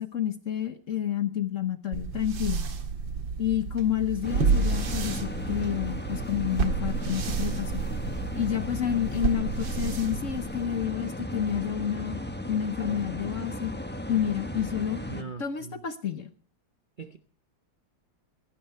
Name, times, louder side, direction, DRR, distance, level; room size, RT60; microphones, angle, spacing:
voice 1, 0.0-2.6 3.4-7.8 8.4-12.2 12.5-13.7 14.1-16.3, left 10 dB, 50° left, 11 dB, 1.1 m, -29 dB
sound 1, 1.9-10.8, right 5 dB, 75° right, 2.3 m, -30 dB
sound 2, 4.2-15.2, left 1 dB, 5° left, 1.0 m, -36 dB
voice 2, 15.1-15.8 17.0-17.2, right 6 dB, 40° right, 7 dB, 0.7 m, -41 dB
17.0 x 16.0 x 4.5 m, 0.40 s
omnidirectional pair, 2.1 m